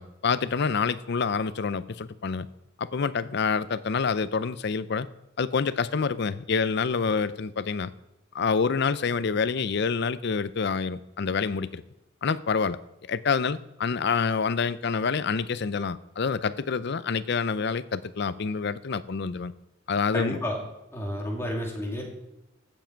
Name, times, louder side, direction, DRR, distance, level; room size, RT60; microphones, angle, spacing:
voice 1, 0.0-2.5 2.8-5.1 5.4-7.9 8.3-11.8 12.2-12.8 13.1-19.5 19.9-20.4, left 5 dB, 55° left, 16 dB, 0.5 m, -27 dB
voice 2, 20.1-20.6 20.9-22.0, equal, 15° left, -1 dB, 2.5 m, -30 dB
15.0 x 7.3 x 4.6 m, 0.92 s
head